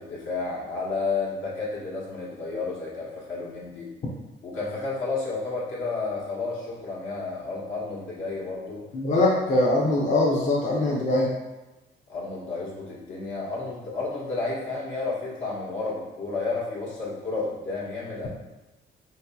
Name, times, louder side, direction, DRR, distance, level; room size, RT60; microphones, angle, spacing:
voice 1, 0.0-3.9 4.4-8.8 12.1-18.3, left 3 dB, 70° left, -6 dB, 1.3 m, -31 dB
voice 2, 8.9-11.3, left 2 dB, 40° left, -4 dB, 0.6 m, -22 dB
3.8 x 2.8 x 2.2 m, 1.1 s
cardioid pair, 90°, 20 cm